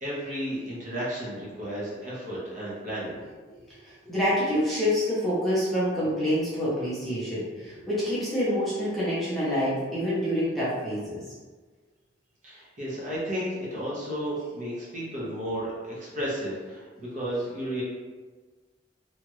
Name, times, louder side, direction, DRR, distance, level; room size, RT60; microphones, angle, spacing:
voice 1, 0.0-3.2 12.4-17.8, equal, 40° right, -7 dB, 0.9 m, -33 dB
voice 2, 3.8-11.2, equal, ahead, -10 dB, 0.7 m, -27 dB
2.9 x 2.4 x 3.0 m, 1.4 s
head